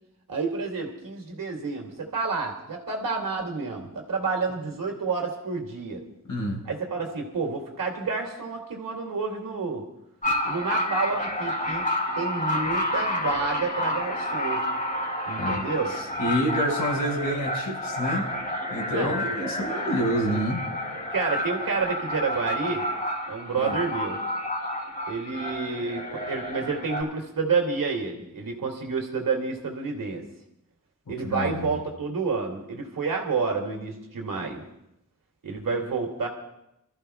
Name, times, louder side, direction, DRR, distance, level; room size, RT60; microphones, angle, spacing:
voice 1, 0.3-6.0 6.7-9.8 10.4-11.8 12.1-14.6 15.3-15.9 18.9-19.2 21.1-22.9 23.3-24.2 25.1-30.2 31.1-34.7 35.4-36.3, right 4 dB, 85° right, 2 dB, 2.4 m, -29 dB
voice 2, 6.3-6.6 15.4-15.7 15.9-18.3 18.7-20.6 23.6-23.8 31.2-31.7, equal, 70° left, 0 dB, 3.3 m, -28 dB
sound 1, 10.2-27.0, left 1 dB, 25° left, 3.0 m, -30 dB
28.0 x 14.0 x 2.3 m, 0.84 s
cardioid pair, 65°, 33 cm